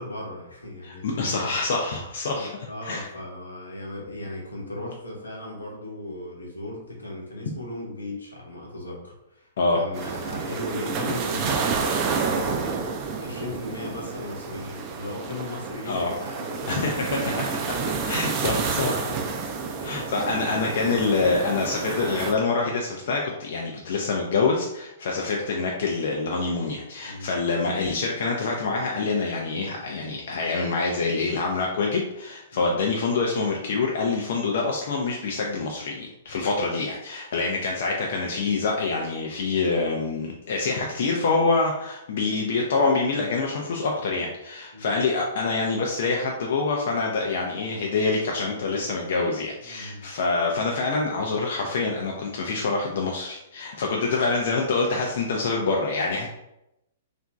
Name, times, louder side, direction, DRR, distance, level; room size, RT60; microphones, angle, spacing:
voice 1, 0.0-1.5 2.3-17.3 18.3-19.4 27.0-27.3 32.5-32.7 37.5-37.6 44.7-44.9 49.6-50.1, left 1 dB, 90° left, -2 dB, 0.8 m, -37 dB
voice 2, 0.8-2.5 2.8-3.1 9.6-9.9 15.9-16.1 16.7-17.2 18.1-18.9 19.8-56.3, left 3 dB, 60° left, -1 dB, 0.4 m, -26 dB
sound 1, 9.9-22.3, right 5 dB, 35° right, 0.4 m, -29 dB
2.8 x 2.4 x 2.3 m, 0.87 s
figure-of-eight pair, 115°, 0 cm